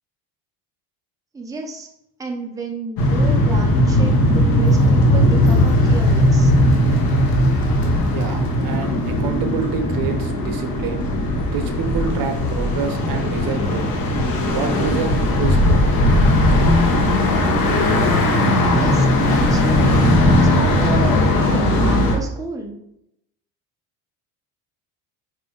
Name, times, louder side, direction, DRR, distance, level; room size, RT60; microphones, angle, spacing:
voice 1, 1.3-1.9 2.2-6.5 18.6-22.8, right 3 dB, 10° right, 2 dB, 0.8 m, -31 dB
sound 1, 3.0-22.2, left 1 dB, 55° left, 1.4 m, -17 dB
voice 2, 8.1-11.0 11.5-13.9 14.5-15.8, right 6 dB, 55° right, 7 dB, 1.0 m, -27 dB
5.4 x 4.7 x 3.9 m, 0.80 s
cardioid pair, 120°, 41 cm